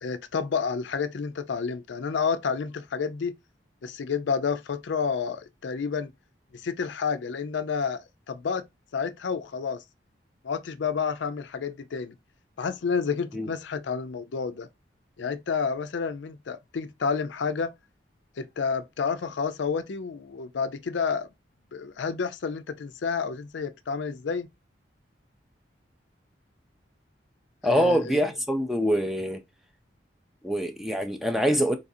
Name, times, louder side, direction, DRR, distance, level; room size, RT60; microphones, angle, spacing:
voice 1, 0.0-3.3 3.8-6.1 6.5-8.6 8.9-9.8 10.4-12.1 12.6-14.7 15.2-17.7 18.4-21.3 21.7-24.5 27.6-28.2, left 5 dB, 80° left, 0.4 m, -30 dB
voice 2, 27.6-29.4 30.4-31.8, equal, ahead, 0.4 m, -24 dB
3.9 x 2.5 x 2.6 m
head